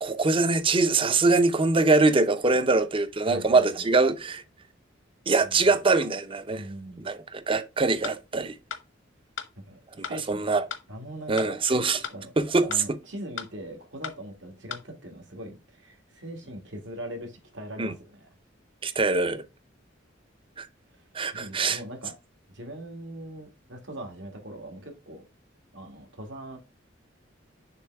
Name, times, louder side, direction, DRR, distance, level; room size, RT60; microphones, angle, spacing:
voice 1, 0.0-4.4 5.3-6.6 7.0-8.6 10.0-10.7 11.3-12.1 12.4-13.0 17.8-17.9 18.8-19.4 20.6-20.7 21.1-21.8, right 3 dB, 30° right, 0.6 m, -23 dB
voice 2, 3.2-3.9 5.4-5.8 6.5-7.0 9.7-10.4 10.9-11.6 12.0-12.3 12.7-18.3 21.3-22.1 22.5-25.2 25.7-26.6, right 1 dB, 70° right, 1.9 m, -41 dB
sound 1, 8.0-8.2 8.7-8.8 9.4-9.5 10.0-10.2 10.7-10.8 11.4-11.5 12.0-12.2 12.7-12.8 13.4-13.5 14.0-14.2 14.7-14.8, left 7 dB, 75° left, 0.9 m, -35 dB
6.7 x 3.2 x 4.6 m
head